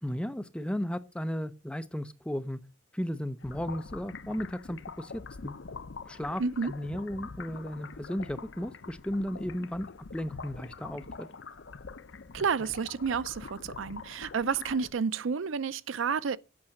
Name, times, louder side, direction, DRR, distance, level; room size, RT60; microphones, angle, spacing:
voice 1, 0.0-2.6 2.9-5.5 6.1-11.3, equal, 5° left, 0.5 m, -35 dB
sound 1, 3.4-14.9, left 4 dB, 60° left, 0.6 m, -44 dB
voice 2, 6.4-6.7 12.3-16.4, right 5 dB, 70° right, 0.5 m, -30 dB
8.6 x 5.8 x 6.4 m
head